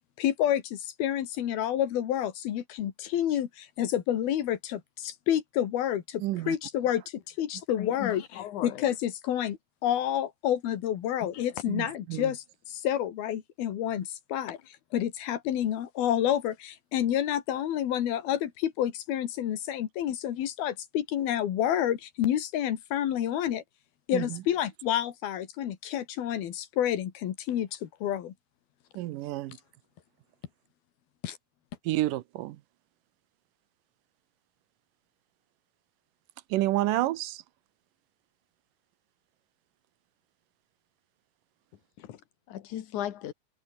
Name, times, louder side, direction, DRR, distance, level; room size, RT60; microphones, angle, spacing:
voice 1, 0.2-8.2 8.6-14.6 14.9-23.6 24.1-28.3 31.2-31.4, left 11 dB, 90° left, 3.8 m, -29 dB
voice 2, 6.2-6.6 11.7-12.3 24.1-24.4 29.0-29.6 31.9-32.6 36.5-37.4, right 16 dB, 75° right, 2.3 m, -29 dB
voice 3, 7.8-8.8 11.3-11.5 42.0-42.2 42.5-43.3, left 11 dB, 65° left, 2.7 m, -37 dB
omnidirectional pair, 4.2 m